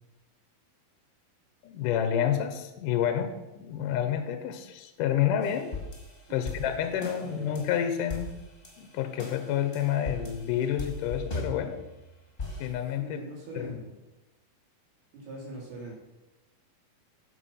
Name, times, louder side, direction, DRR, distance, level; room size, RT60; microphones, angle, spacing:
voice 1, 1.6-5.7 6.3-8.3 8.8-11.8 12.6-13.2 13.6-13.7, left 9 dB, 70° left, 8 dB, 2.2 m, -29 dB
sound 1, 5.4-7.8 8.1-8.8 9.2-12.0 12.4-12.7, left 2 dB, 20° left, 1.7 m, -38 dB
voice 2, 7.2-7.6 13.0-13.9 15.1-15.9, right 1 dB, 85° right, -3 dB, 4.9 m, -42 dB
14.0 x 5.5 x 5.7 m, 1.0 s
omnidirectional pair, 4.4 m